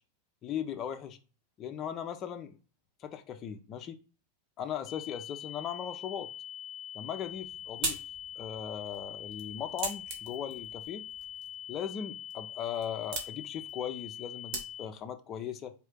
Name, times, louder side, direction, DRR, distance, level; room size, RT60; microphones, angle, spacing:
voice 1, 0.4-1.2 1.6-2.6 3.0-4.0 4.6-6.3 6.9-8.0 8.4-11.0 11.7-15.7, left 8 dB, 35° left, 6 dB, 0.6 m, -38 dB
sound 1, 4.9-14.9, left 9 dB, 75° left, 0.6 m, -44 dB
sound 2, 7.1-15.1, right 3 dB, 50° right, 1.6 m, -42 dB
4.3 x 2.7 x 3.5 m, 0.35 s
hypercardioid pair, 100°, 0 cm